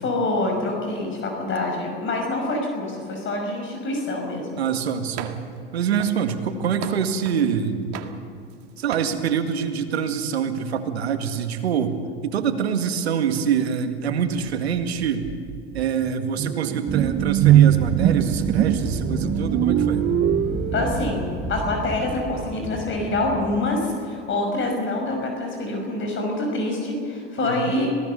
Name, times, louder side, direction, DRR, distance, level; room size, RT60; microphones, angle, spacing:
voice 1, 0.0-4.6 20.7-27.9, left 2 dB, 40° left, 2 dB, 5.9 m, -26 dB
voice 2, 4.6-5.3 5.7-7.9 8.8-12.0 12.2-15.3 15.7-20.1 27.4-27.8, right 7 dB, 85° right, 7 dB, 2.0 m, -25 dB
sound 1, 5.2-5.6 6.0-7.5 7.9-8.6 8.9-9.2, right 10 dB, 55° right, 2.0 m, -37 dB
sound 2, 14.8-14.9 15.2-21.4, right 12 dB, 35° right, 0.5 m, -21 dB
Wind, 16.9-23.8, right 1 dB, ahead, 4.4 m, -31 dB
26.5 x 18.0 x 7.0 m, 2.5 s
hypercardioid pair, 90°, 31 cm